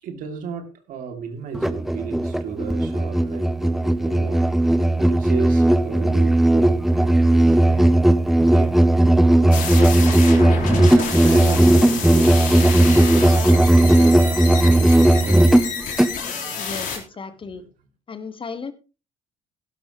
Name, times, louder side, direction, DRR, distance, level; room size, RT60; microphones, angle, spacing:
voice 1, 0.0-4.5 5.0-8.8 9.0-9.2 9.5-9.8 10.7-15.7 17.5-17.6, right 6 dB, 60° right, 6 dB, 2.7 m, -34 dB
Musical instrument, 1.5-16.2, right 1 dB, ahead, 0.9 m, -16 dB
sound 1, 9.5-17.0, left 6 dB, 55° left, 3.8 m, -29 dB
voice 2, 16.6-17.6 18.1-18.7, left 5 dB, 35° left, 12 dB, 1.6 m, -34 dB
16.5 x 11.5 x 3.1 m, 0.32 s
hypercardioid pair, 55°, 16 cm